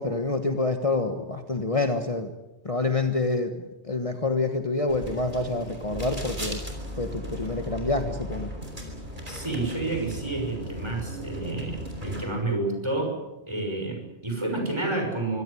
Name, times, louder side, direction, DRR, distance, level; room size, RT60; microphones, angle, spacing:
voice 1, 0.0-2.3 2.6-6.6 7.0-8.5, left 3 dB, 30° left, 6 dB, 1.5 m, -27 dB
sound 1, 4.9-12.3, equal, 45° right, 5.0 m, -36 dB
voice 2, 9.3-13.2 13.5-15.4, right 2 dB, 25° right, 2 dB, 6.1 m, -29 dB
24.5 x 17.0 x 9.9 m, 1.0 s
omnidirectional pair, 1.2 m